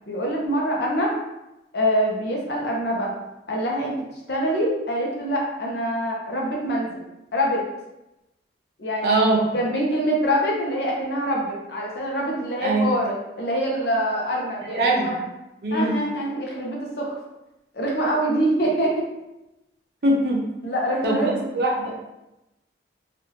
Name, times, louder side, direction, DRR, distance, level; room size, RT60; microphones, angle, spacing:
voice 1, 0.1-1.2 1.7-3.1 3.5-3.9 4.3-7.0 7.3-7.6 8.8-9.3 9.5-15.2 15.7-17.1 17.7-19.0 20.6-21.5, equal, 65° left, -2 dB, 0.8 m, -25 dB
voice 2, 9.0-9.4 12.6-12.9 14.7-15.1 15.6-15.9 20.0-20.4 21.0-21.9, right 1 dB, 60° right, -2 dB, 0.8 m, -21 dB
3.2 x 2.5 x 3.0 m, 0.94 s
head